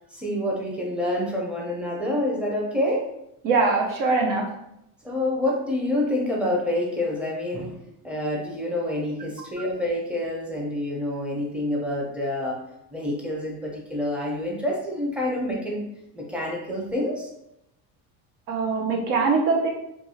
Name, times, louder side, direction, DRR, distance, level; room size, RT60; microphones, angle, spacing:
voice 1, 0.1-3.1 5.0-12.6 12.9-15.8 16.1-17.3, left 1 dB, 5° right, -3 dB, 0.7 m, -27 dB
voice 2, 3.4-4.4 18.5-19.7, right 4 dB, 60° right, 0 dB, 0.9 m, -22 dB
2.7 x 2.6 x 2.8 m, 0.82 s
cardioid pair, 130°, 36 cm